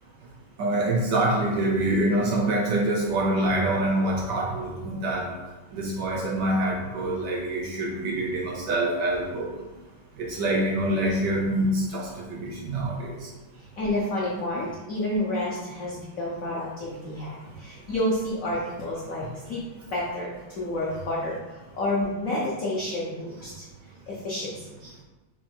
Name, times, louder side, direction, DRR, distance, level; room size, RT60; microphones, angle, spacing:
voice 1, 0.6-5.3 5.7-9.5 10.2-13.2, right 1 dB, 70° right, -1 dB, 1.0 m, -25 dB
voice 2, 13.5-19.6 19.9-23.7 24.1-24.7, left 1 dB, 80° left, -5 dB, 0.7 m, -30 dB
4.3 x 2.3 x 4.4 m, 1.2 s
omnidirectional pair, 2.3 m